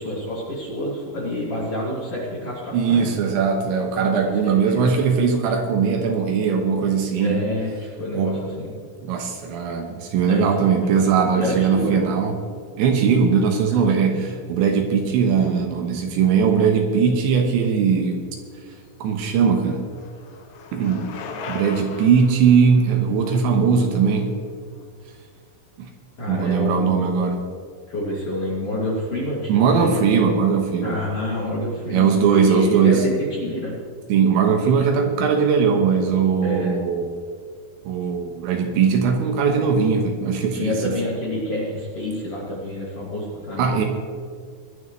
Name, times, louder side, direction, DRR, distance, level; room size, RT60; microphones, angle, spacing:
voice 1, 0.0-3.2 4.4-5.0 7.2-8.7 10.2-10.5 10.8-12.2 13.7-14.2 26.2-27.3 27.9-30.0 30.8-32.1 32.3-33.7 36.4-36.7 40.5-43.8, left 1 dB, 40° left, -6 dB, 2.5 m, -28 dB
voice 2, 2.7-7.5 8.1-8.4 9.0-12.3 12.8-18.2 19.0-19.9 20.7-21.1 21.5-24.4 25.8-25.9 26.3-27.4 29.5-31.0 31.9-33.1 34.1-37.1 37.9-40.9 43.6-43.8, right 6 dB, 75° right, 3 dB, 3.1 m, -20 dB
Bicycle, 18.9-24.8, left 4 dB, 75° left, 3.7 m, -39 dB
20.5 x 12.0 x 3.2 m, 2.1 s
omnidirectional pair, 5.8 m